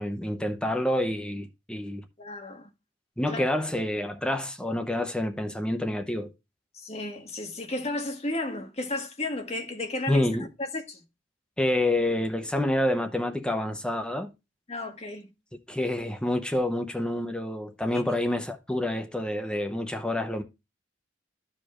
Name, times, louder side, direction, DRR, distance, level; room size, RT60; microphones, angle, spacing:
voice 1, 0.0-2.0 3.2-6.3 10.1-10.5 11.6-14.3 15.7-20.4, left 1 dB, 5° left, 0.8 m, -28 dB
voice 2, 2.2-2.7 3.3-3.4 6.7-10.3 10.7-11.0 14.7-15.3 17.9-18.0, left 2 dB, 35° left, 1.6 m, -33 dB
14.0 x 5.0 x 2.4 m
head